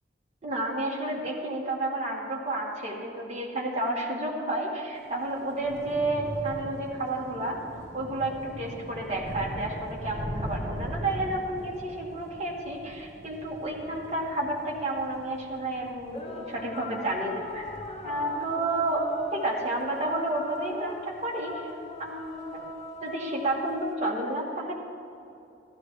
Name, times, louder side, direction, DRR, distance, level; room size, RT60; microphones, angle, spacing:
voice 1, 0.4-7.6 7.9-17.7 18.0-21.6 22.0-22.6 23.0-24.8, right 2 dB, 40° right, -3 dB, 1.7 m, -31 dB
Thunder / Rain, 5.1-21.6 22.0-22.4 22.7-22.9, equal, 15° right, 1.2 m, -41 dB
sound 1, 13.8-15.2 16.1-23.8, left 2 dB, 30° left, 1.0 m, -41 dB
13.5 x 12.5 x 3.2 m, 2.7 s
head